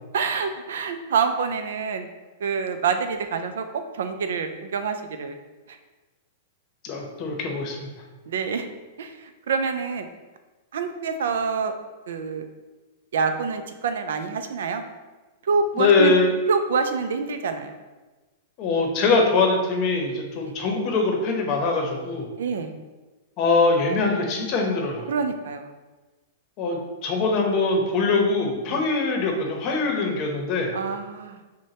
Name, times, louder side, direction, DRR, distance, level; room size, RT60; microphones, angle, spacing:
voice 1, 0.1-2.1 2.4-5.4 5.7-5.8 8.3-8.7 9.0-10.1 10.7-11.7 12.1-12.5 13.1-14.8 15.4-16.1 16.5-17.8 22.4-22.8 25.1-25.7 28.7-28.8 30.7-31.4, right 5 dB, 80° right, 8 dB, 0.4 m, -26 dB
voice 2, 6.8-7.9 15.7-16.3 18.6-22.3 23.4-25.1 26.6-30.7, left 3 dB, 40° left, 1 dB, 0.8 m, -22 dB
6.2 x 2.2 x 2.8 m, 1.2 s
hypercardioid pair, 140°, 0 cm